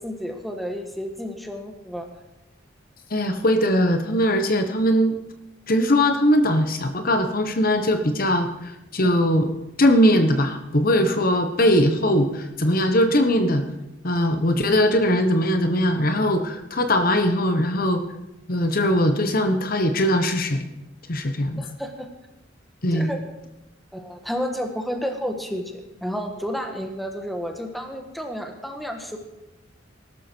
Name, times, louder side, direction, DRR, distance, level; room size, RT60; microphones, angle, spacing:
voice 1, 0.0-2.1 9.0-9.2 21.6-22.1 22.9-23.2 23.9-29.2, equal, ahead, 4 dB, 1.5 m, -31 dB
voice 2, 3.1-5.2 5.7-9.5 9.8-13.7 14.0-18.0 18.5-20.6 21.1-21.6 22.8-23.1, equal, 50° left, 7 dB, 1.2 m, -20 dB
19.5 x 12.0 x 4.6 m, 0.94 s
head